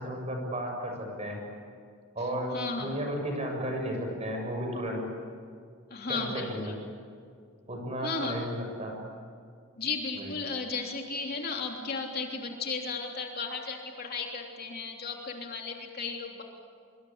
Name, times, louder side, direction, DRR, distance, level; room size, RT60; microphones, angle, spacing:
voice 1, 0.0-1.4 2.2-5.0 6.1-6.7 7.7-9.0 10.2-10.3, equal, 30° right, 2 dB, 7.0 m, -33 dB
voice 2, 2.5-3.0 5.9-6.8 8.0-8.3 9.8-16.4, left 4 dB, 45° left, 1 dB, 3.3 m, -35 dB
25.5 x 24.5 x 8.8 m, 2.2 s
head